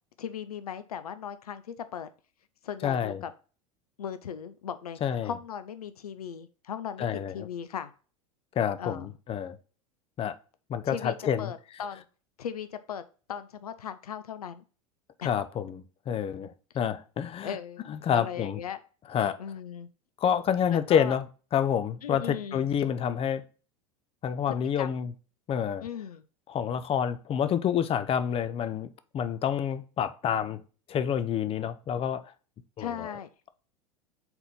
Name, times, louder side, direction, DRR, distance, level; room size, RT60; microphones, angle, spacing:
voice 1, 0.2-2.1 2.6-3.3 4.0-7.9 8.8-9.1 10.9-12.0 12.4-13.0 13.3-14.6 15.2-15.3 17.4-17.8 18.1-18.8 19.4-19.9 20.7-21.2 22.0-22.7 24.5-25.0 25.8-26.2 32.8-33.3, left 8 dB, 85° left, 0.5 m, -38 dB
voice 2, 2.8-3.2 5.0-5.3 7.0-7.4 8.6-9.6 10.2-10.3 10.7-11.5 15.2-17.5 17.9-18.6 19.1-19.4 20.2-21.2 21.5-23.4 24.2-25.1 25.5-25.9 26.5-28.9 29.1-30.6 30.9-32.2 32.8-33.1, left 8 dB, 30° left, 0.6 m, -28 dB
4.4 x 4.0 x 5.3 m
hypercardioid pair, 90°, 19 cm